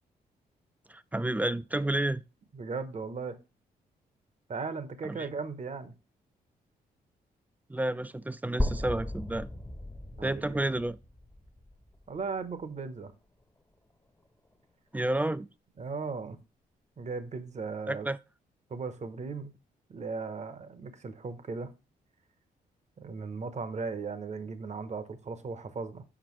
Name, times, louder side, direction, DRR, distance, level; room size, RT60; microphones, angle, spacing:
voice 1, 0.9-2.2 5.1-5.3 7.7-9.5 10.2-11.0 14.9-15.5 17.9-18.2, right 1 dB, 10° right, 0.4 m, -30 dB
voice 2, 2.5-3.4 4.5-5.9 10.2-10.6 12.1-13.1 15.8-16.4 17.0-18.1 18.7-19.5 19.9-21.7 23.0-26.0, right 4 dB, 40° right, 0.9 m, -37 dB
sound 1, 8.6-12.5, left 1 dB, 15° left, 0.8 m, -36 dB
6.0 x 5.0 x 3.1 m
supercardioid pair, 60°, 17 cm